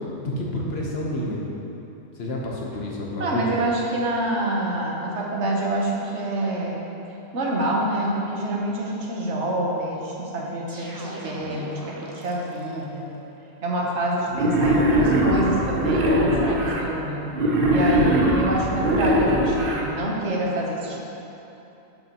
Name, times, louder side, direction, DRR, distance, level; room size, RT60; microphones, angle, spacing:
voice 1, 0.2-1.4 2.2-3.5, left 1 dB, 60° left, -3 dB, 1.3 m, -29 dB
voice 2, 3.2-6.8 7.3-13.1 13.6-17.2 17.7-21.1, right 1 dB, 75° right, -2 dB, 1.3 m, -27 dB
sound 1, 10.7-12.9, right 1 dB, 20° right, 0.6 m, -39 dB
Wild animals, 14.3-16.8 17.3-19.8, right 1 dB, 55° right, 0.9 m, -21 dB
7.9 x 7.7 x 3.0 m, 3.0 s
omnidirectional pair, 1.2 m